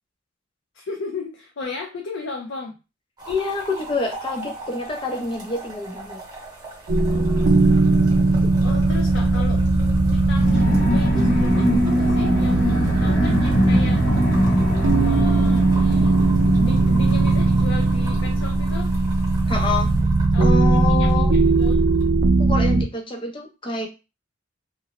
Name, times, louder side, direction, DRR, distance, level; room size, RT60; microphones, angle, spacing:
voice 1, 0.7-2.8 7.1-8.2 8.6-9.6 10.1-14.3 15.0-16.2 16.5-18.9 20.3-21.8, left 3 dB, 80° left, 2 dB, 0.5 m, -35 dB
sound 1, 3.2-22.1 22.4-22.8, right 2 dB, 20° right, 0.9 m, -40 dB
voice 2, 3.3-6.2 8.4-8.5 19.5-19.9 20.4-21.3 22.4-23.9, left 3 dB, 25° left, 2 dB, 0.5 m, -27 dB
sound 2, 6.9-22.8, right 2 dB, 80° right, 0.4 m, -19 dB
sound 3, 10.3-18.5, equal, 55° left, 1.0 m, -24 dB
2.5 x 2.0 x 2.8 m, 0.29 s
head